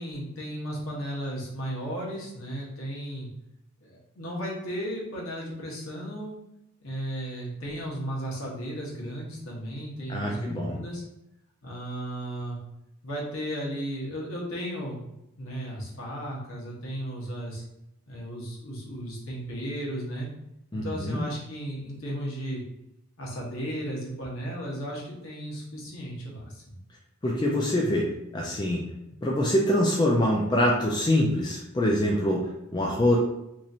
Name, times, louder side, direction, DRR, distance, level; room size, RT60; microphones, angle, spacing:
voice 1, 0.0-3.3 3.8-6.3 6.8-11.0 11.6-12.6 13.0-15.0 15.4-17.6 18.1-20.3 20.7-22.6 23.2-26.7, equal, 65° left, -4 dB, 1.2 m, -35 dB
voice 2, 10.1-10.8 20.7-21.2 27.2-28.8 29.2-33.2, left 1 dB, 20° left, -3 dB, 0.4 m, -25 dB
3.0 x 2.5 x 4.1 m, 0.86 s
head